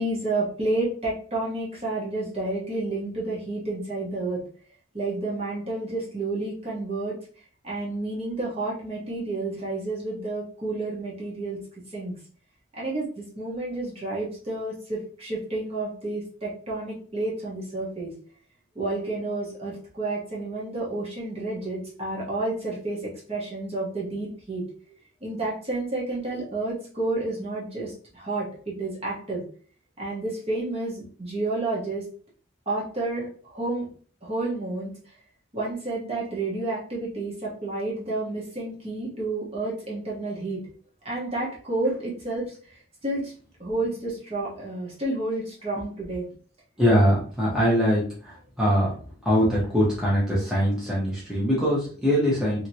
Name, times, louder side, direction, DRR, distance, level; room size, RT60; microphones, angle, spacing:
voice 1, 0.0-4.4 4.9-7.1 7.6-11.6 11.9-12.1 12.7-18.1 18.7-24.6 25.2-29.4 30.0-32.0 32.7-33.9 34.2-35.0 35.5-40.6 41.0-42.5 43.0-43.3 43.6-46.3, right 2 dB, 30° right, -5 dB, 1.1 m, -30 dB
voice 2, 46.8-49.0 49.2-52.7, equal, 5° right, -8 dB, 0.9 m, -22 dB
3.0 x 3.0 x 2.7 m, 0.43 s
head